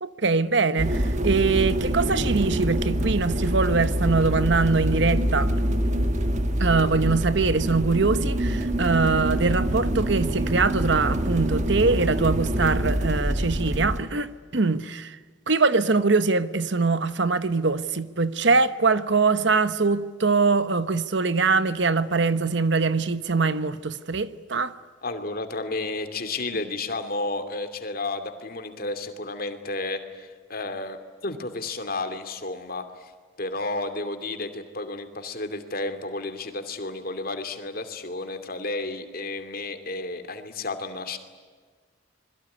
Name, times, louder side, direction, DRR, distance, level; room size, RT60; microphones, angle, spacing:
voice 1, 0.0-5.5 6.6-15.2 15.5-24.7, right 4 dB, 60° right, 1.0 m, -23 dB
sound 1, 0.8-14.0, equal, 35° right, 1.7 m, -25 dB
voice 2, 25.0-33.1 33.4-41.2, left 2 dB, 50° left, 2.7 m, -32 dB
26.5 x 22.0 x 9.8 m
head